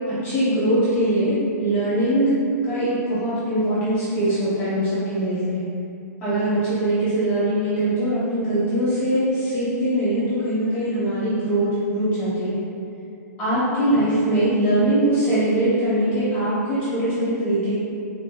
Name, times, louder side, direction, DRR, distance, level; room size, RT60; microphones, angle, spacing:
voice 1, 0.2-2.3 2.7-5.6 6.2-12.6 13.4-17.7, right 1 dB, 15° left, -11 dB, 0.6 m, -22 dB
4.7 x 2.1 x 2.5 m, 2.6 s
hypercardioid pair, 170°, 10 cm